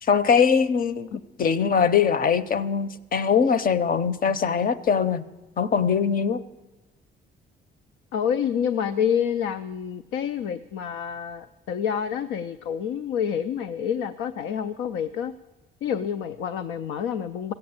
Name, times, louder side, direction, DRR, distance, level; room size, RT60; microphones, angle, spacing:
voice 1, 0.0-1.1 1.4-5.2 5.6-6.4, left 6 dB, 45° left, 0.7 m, -22 dB
voice 2, 8.1-15.3 15.8-17.5, left 8 dB, 90° left, 0.5 m, -28 dB
15.0 x 7.9 x 8.7 m
cardioid pair, 90°, 20 cm